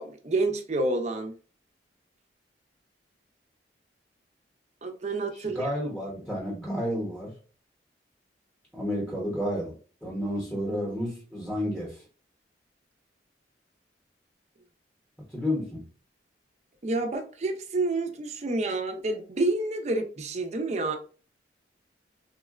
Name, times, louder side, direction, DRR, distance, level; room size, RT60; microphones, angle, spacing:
voice 1, 0.0-1.3 4.8-5.7 16.8-21.0, right 2 dB, 35° right, 0.4 m, -29 dB
voice 2, 5.3-7.3 8.7-9.7 10.0-12.0 15.3-15.8, equal, 5° left, 0.8 m, -31 dB
3.6 x 2.1 x 2.3 m
head